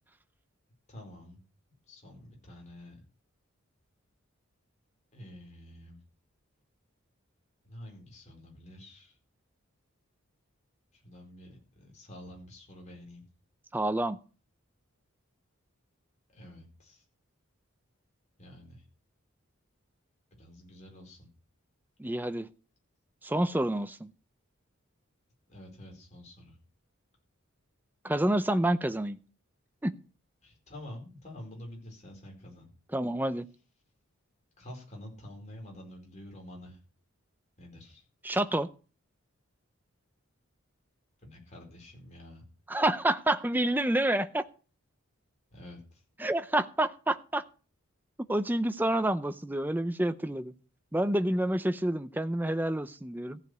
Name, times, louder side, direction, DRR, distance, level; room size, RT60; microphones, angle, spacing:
voice 1, 0.9-1.4 1.9-3.0 5.1-6.0 7.6-9.2 10.9-13.3 16.3-17.0 18.4-18.8 20.4-21.3 25.5-26.6 30.4-32.8 34.6-36.8 37.6-38.0 41.2-42.4 45.5-46.0, left 1 dB, 35° left, 4.7 m, -48 dB
voice 2, 13.7-14.2 22.0-22.5 23.2-24.1 28.0-29.2 29.8-29.9 32.9-33.5 38.2-38.7 42.7-44.5 46.2-47.4 48.3-50.5 50.9-53.4, right 1 dB, 10° right, 0.5 m, -28 dB
15.0 x 5.0 x 8.0 m
head